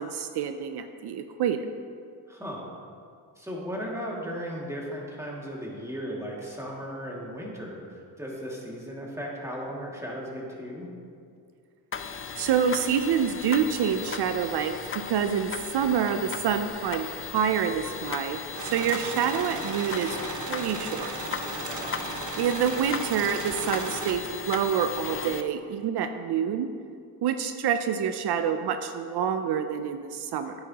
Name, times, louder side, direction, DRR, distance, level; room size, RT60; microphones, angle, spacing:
voice 1, 0.0-1.6 12.4-14.8 15.1-17.1 17.3-20.2 20.5-21.1 22.4-26.7 27.2-30.6, right 8 dB, 75° right, 8 dB, 0.5 m, -27 dB
voice 2, 2.3-2.7 3.4-10.9 21.7-22.3, equal, 5° right, -4 dB, 2.1 m, -36 dB
sound 1, 11.9-25.4, left 6 dB, 35° left, 0.5 m, -37 dB
sound 2, 18.6-24.2, right 3 dB, 45° right, 1.0 m, -36 dB
10.5 x 9.6 x 2.9 m, 2.3 s
cardioid pair, 90°, 39 cm